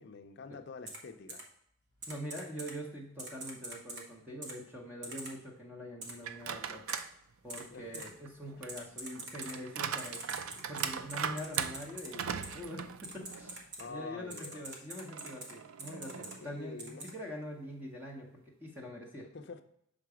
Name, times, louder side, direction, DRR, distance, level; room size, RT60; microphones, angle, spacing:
voice 1, 0.0-1.4 7.7-8.1 8.6-8.7 13.8-14.9 16.4-17.1 19.3-19.6, left 4 dB, 55° left, 8 dB, 0.5 m, -47 dB
Typing, 0.9-1.0 1.3-1.4 2.0-2.7 3.2-4.0 4.4-4.5 5.0-5.3 6.0-6.1 6.9-7.0 7.5-7.6 7.9-8.0 8.7-9.5 10.0-12.1 12.4-12.6 13.0-13.8 14.3-15.5 15.8-16.3 16.8-17.1, right 2 dB, 55° right, 1.1 m, -44 dB
voice 2, 2.1-6.8 7.4-10.2 10.6-12.8 13.1-19.3, equal, 10° right, -1 dB, 0.8 m, -44 dB
sound 1, 6.2-7.1 7.5-13.6 14.0-14.1 15.1-16.6, right 7 dB, 75° right, 0.4 m, -39 dB
5.9 x 3.9 x 4.8 m, 0.75 s
head